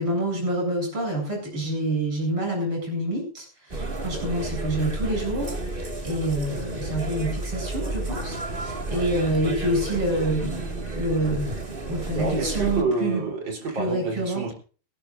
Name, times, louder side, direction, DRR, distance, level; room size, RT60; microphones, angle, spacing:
voice 1, 0.0-10.6 10.9-11.5 11.9-13.2 13.7-14.4, right 1 dB, 75° right, 0 dB, 9.0 m, -27 dB
sound 1, 3.7-12.8, right 2 dB, 25° right, 2.2 m, -31 dB
voice 2, 12.1-14.5, right 3 dB, 55° right, 3 dB, 4.5 m, -28 dB
28.5 x 12.0 x 2.6 m, 0.39 s
omnidirectional pair, 2.4 m